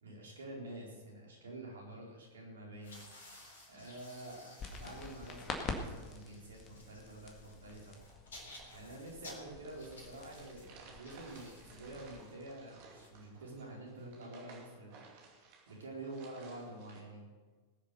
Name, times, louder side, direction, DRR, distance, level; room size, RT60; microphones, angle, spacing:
voice 1, 0.0-3.0 3.7-8.0 8.7-15.3 15.7-17.3, right 2 dB, 65° right, -1 dB, 4.2 m, -48 dB
sound 1, 2.8-13.8, left 1 dB, 65° left, 3.7 m, -57 dB
sound 2, 4.6-12.2, left 4 dB, 30° left, 1.9 m, -47 dB
sound 3, 8.4-17.0, right 5 dB, 50° right, 2.6 m, -58 dB
20.0 x 7.1 x 6.6 m, 1.3 s
figure-of-eight pair, 90°, 0 cm